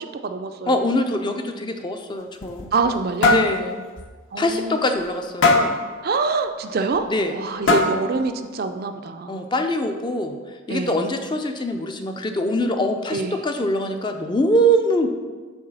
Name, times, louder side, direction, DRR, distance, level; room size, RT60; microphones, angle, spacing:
voice 1, 0.0-0.8 2.7-3.4 4.3-4.8 6.0-9.4 10.7-11.0 13.1-13.5, right 4 dB, 45° right, 7 dB, 0.3 m, -25 dB
voice 2, 0.7-2.7 3.3-3.8 4.4-5.8 7.1-7.3 9.3-15.1, equal, 20° left, 5 dB, 0.4 m, -23 dB
sound 1, 2.2-3.0 3.2-3.5 4.0-4.1 4.5-4.6 5.4-5.8 6.9-7.0 7.7-8.1, left 3 dB, 60° left, 0.8 m, -18 dB
7.9 x 3.1 x 5.5 m, 1.4 s
head